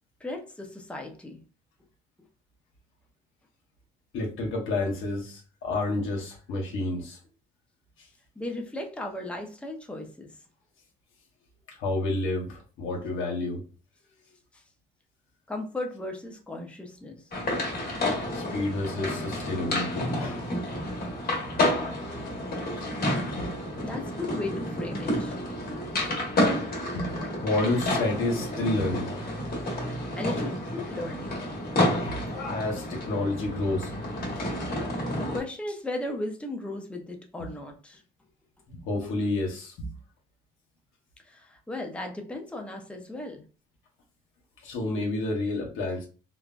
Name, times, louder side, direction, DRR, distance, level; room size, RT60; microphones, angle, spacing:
voice 1, 0.2-1.4 8.4-10.4 14.5-14.6 15.5-17.2 23.8-25.3 29.9-31.4 35.2-38.0 41.2-43.4, left 2 dB, 5° left, 2 dB, 0.5 m, -36 dB
voice 2, 4.1-7.2 11.8-13.6 18.3-20.5 20.9-21.0 22.9-23.0 23.3-23.5 25.4-25.6 25.9-26.2 26.9-27.1 27.4-29.4 31.9-33.9 37.4-37.5 38.8-39.9 44.6-46.1, left 2 dB, 85° left, 0 dB, 1.0 m, -30 dB
sound 1, 17.3-35.4, left 1 dB, 50° left, 1.2 m, -30 dB
3.2 x 2.2 x 2.4 m, 0.35 s
cardioid pair, 90°, 20 cm